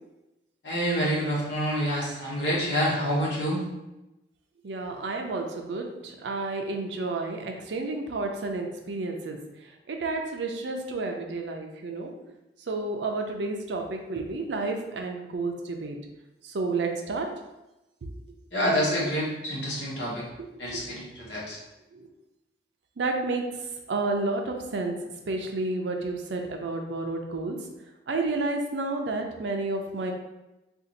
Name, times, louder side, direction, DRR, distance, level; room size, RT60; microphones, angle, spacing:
voice 1, 0.6-3.7 18.5-20.2 20.6-21.6, equal, 80° left, -5 dB, 1.1 m, -27 dB
voice 2, 4.6-9.4 9.9-12.1 12.7-16.0 16.4-17.3 18.0-18.1 20.7-20.8 21.2-21.3 21.9-22.1 23.0-23.4 23.9-24.9 25.3-27.6 28.1-30.1, right 3 dB, 85° right, 3 dB, 0.5 m, -30 dB
2.6 x 2.4 x 3.9 m, 0.97 s
head